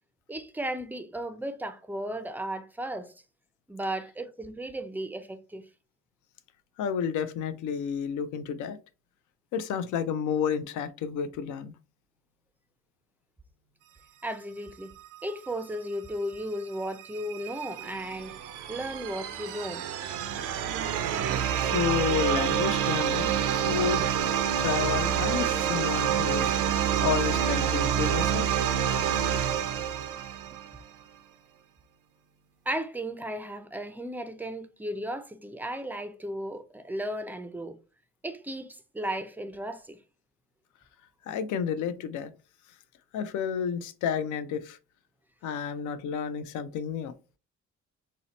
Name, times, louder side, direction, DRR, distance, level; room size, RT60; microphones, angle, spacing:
voice 1, 0.3-3.1 3.7-5.6 14.2-14.9 15.2-18.4 18.7-19.9 32.7-37.8 38.2-40.0, right 1 dB, 5° right, 0.3 m, -35 dB
voice 2, 6.8-8.8 9.5-11.7 21.6-23.3 23.7-24.1 24.6-26.5 27.0-28.5 41.3-42.3 43.1-44.8 45.4-47.1, left 7 dB, 80° left, 0.5 m, -31 dB
sound 1, 17.0-30.8, right 9 dB, 85° right, 0.5 m, -27 dB
2.8 x 2.1 x 3.9 m
cardioid pair, 90°, 30 cm